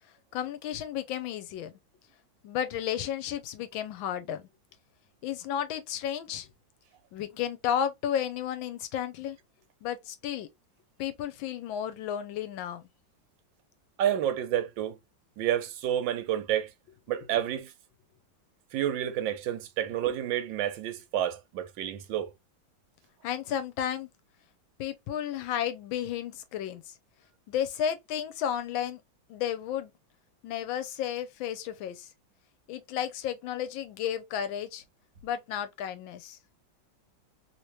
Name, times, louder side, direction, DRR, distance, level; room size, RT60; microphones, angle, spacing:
voice 1, 0.3-1.7 2.4-4.5 5.2-6.5 7.1-9.4 9.8-10.5 11.0-12.9 23.2-24.1 24.8-26.9 27.5-29.0 29.3-29.9 30.4-32.1 32.7-34.8 35.2-36.4, left 9 dB, 90° left, 1.4 m, -33 dB
voice 2, 14.0-15.0 15.4-16.7 17.1-17.7 18.7-22.3, right 11 dB, 80° right, 1.3 m, -29 dB
3.2 x 2.9 x 3.0 m
omnidirectional pair, 2.1 m